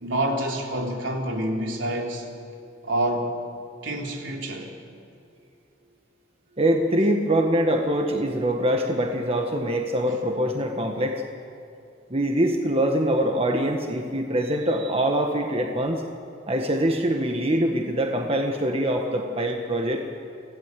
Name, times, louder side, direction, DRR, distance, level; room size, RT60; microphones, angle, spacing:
voice 1, 0.0-2.3 2.8-3.3 3.8-4.7, right 1 dB, 75° right, 1 dB, 3.4 m, -27 dB
voice 2, 6.6-11.2 12.1-16.0 16.5-20.0, right 1 dB, 30° right, 3 dB, 1.5 m, -24 dB
26.5 x 16.5 x 8.4 m, 2.4 s
head